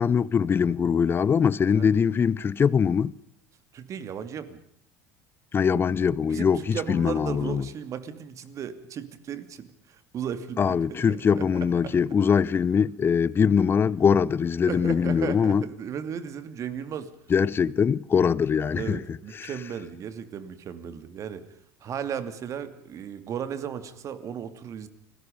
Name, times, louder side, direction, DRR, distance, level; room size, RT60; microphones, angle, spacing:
voice 1, 0.0-3.1 5.5-7.6 10.6-15.6 17.3-19.0 19.4-19.5, left 6 dB, 30° left, 0.9 m, -22 dB
voice 2, 3.7-4.6 6.3-11.5 11.8-12.0 14.6-17.1 18.8-21.4 21.8-24.9, right 8 dB, 40° right, 2.6 m, -35 dB
30.0 x 20.0 x 5.3 m
figure-of-eight pair, 70°, 8 cm